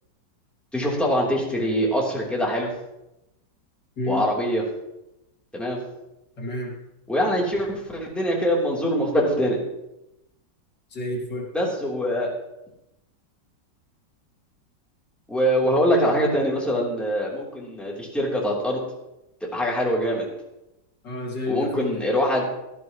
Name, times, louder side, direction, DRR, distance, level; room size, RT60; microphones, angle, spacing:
voice 1, 0.7-2.7 4.1-4.6 5.5-5.8 7.1-9.6 11.5-12.3 15.3-18.8 19.5-20.3 21.5-22.4, equal, ahead, -4 dB, 3.3 m, -23 dB
voice 2, 6.4-6.7 10.9-11.5 21.0-22.0, left 1 dB, 70° left, -1 dB, 3.1 m, -29 dB
18.0 x 13.0 x 3.1 m, 0.91 s
omnidirectional pair, 1.9 m